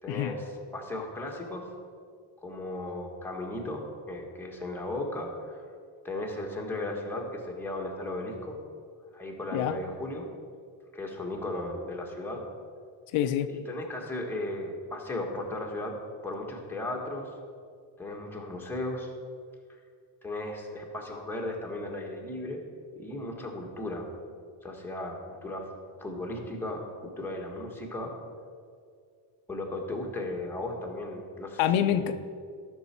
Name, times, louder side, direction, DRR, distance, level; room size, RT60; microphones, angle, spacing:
voice 1, 0.0-1.7 2.4-5.6 6.0-8.6 9.1-10.3 10.9-12.5 13.5-17.3 18.0-19.1 20.2-22.6 22.9-24.1 24.6-25.7 26.0-28.1 29.5-32.0, left 1 dB, 5° left, -1 dB, 1.4 m, -36 dB
voice 2, 13.1-13.5 31.6-32.2, left 10 dB, 80° left, 9 dB, 0.6 m, -26 dB
12.5 x 6.3 x 4.4 m, 2.2 s
cardioid pair, 125°, 49 cm